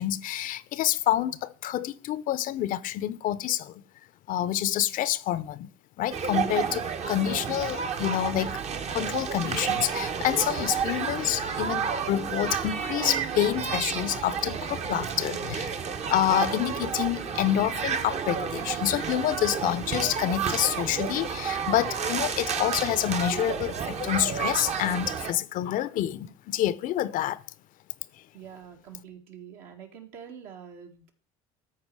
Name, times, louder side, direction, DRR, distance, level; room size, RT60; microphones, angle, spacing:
voice 1, 0.0-3.7 4.3-5.7 6.0-8.6 8.9-15.7 16.1-27.4, left 12 dB, 55° left, 0.6 m, -28 dB
sound 1, 6.1-25.3, right 6 dB, 45° right, 1.1 m, -31 dB
voice 2, 28.3-31.1, right 8 dB, 70° right, 2.0 m, -45 dB
13.0 x 4.5 x 4.8 m
supercardioid pair, 80°, 16 cm